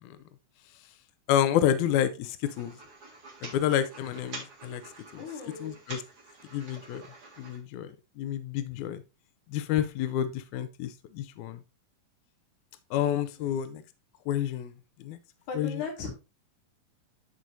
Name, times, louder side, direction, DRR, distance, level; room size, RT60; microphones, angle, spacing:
voice 1, 1.3-2.8 3.4-4.8 5.6-6.0 6.5-7.0 7.4-7.9 8.2-9.0 9.5-11.6 12.9-13.8 14.3-14.7 15.0-15.2 15.6-15.7, left 10 dB, 80° left, 1.7 m, -29 dB
Puppy Hassling, 2.4-7.6, right 3 dB, 40° right, 1.7 m, -47 dB
voice 2, 5.1-5.8 13.4-13.6 15.5-16.1, left 4 dB, 60° left, 3.2 m, -38 dB
12.5 x 4.5 x 2.6 m
omnidirectional pair, 4.0 m